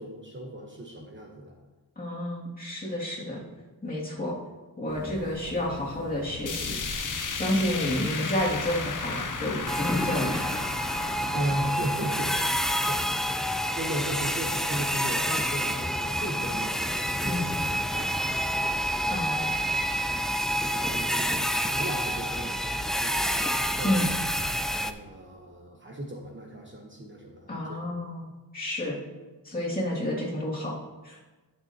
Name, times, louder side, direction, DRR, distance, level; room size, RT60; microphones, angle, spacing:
voice 1, 0.0-1.6 11.3-13.2 13.7-20.0 20.6-21.3 21.7-24.1 24.8-28.0, right 1 dB, 30° right, 0 dB, 1.0 m, -37 dB
voice 2, 2.0-3.4 3.8-4.4 4.8-6.8 7.3-10.4 17.2-17.5 19.1-19.4 23.8-24.1 27.5-29.0 29.4-30.7 31.0-31.2, left 1 dB, 20° left, -5 dB, 2.4 m, -30 dB
sound 1, 4.9-11.6, left 1 dB, 65° left, 1.9 m, -41 dB
sound 2, 6.5-16.6 17.0-17.1 17.5-17.6 18.4-18.5, left 5 dB, 50° left, 0.9 m, -37 dB
sound 3, 9.7-24.9, equal, ahead, 0.3 m, -28 dB
11.5 x 6.5 x 2.9 m, 1.2 s
cardioid pair, 90°, 41 cm